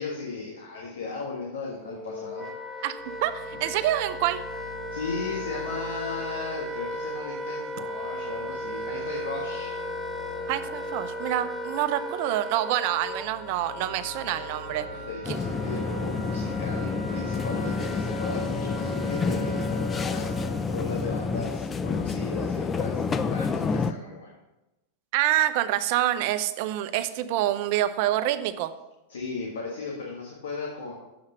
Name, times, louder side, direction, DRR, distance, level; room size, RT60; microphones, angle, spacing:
voice 1, 0.0-2.5 2.8-2.9 4.9-9.7 14.7-24.3 26.9-27.1 29.1-30.9, left 4 dB, 75° left, -3 dB, 1.6 m, -36 dB
Wind instrument woodwind instrument, 1.8-20.7, equal, 10° right, 1.0 m, -36 dB
voice 2, 2.8-4.4 10.5-14.9 15.3-15.4 25.1-28.7, right 13 dB, 55° right, 12 dB, 0.6 m, -27 dB
sound 1, 3.0-17.3 17.8-21.3, left 4 dB, 50° left, 3.0 m, -48 dB
sound 2, 15.2-23.9, left 4 dB, 25° left, 0.5 m, -29 dB
7.6 x 5.7 x 5.8 m, 0.98 s
hypercardioid pair, 95°, 0 cm